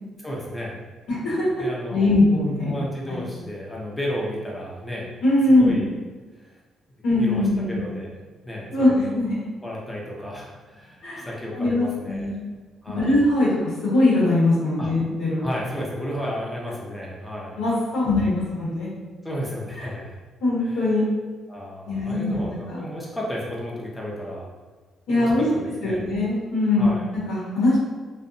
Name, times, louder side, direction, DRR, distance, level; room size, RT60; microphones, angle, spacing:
voice 1, 0.2-0.8 1.6-2.2 2.6-5.1 5.5-5.9 7.2-9.2 9.6-12.3 12.8-13.2 14.8-14.9 15.4-17.6 18.0-18.3 19.2-20.2 20.6-21.0 21.5-24.5 25.2-26.1 26.8-27.1, equal, 10° left, -4 dB, 0.6 m, -33 dB
voice 2, 1.1-2.7 3.1-3.2 5.2-5.9 7.0-7.8 8.7-9.4 11.0-11.3 11.5-12.4 12.9-13.5 13.8-15.4 17.6-18.9 20.4-21.0 21.8-22.8 25.1-25.4 25.8-27.8, left 2 dB, 90° left, -8 dB, 1.2 m, -21 dB
2.6 x 2.1 x 2.6 m, 1.4 s
cardioid pair, 90°, 0 cm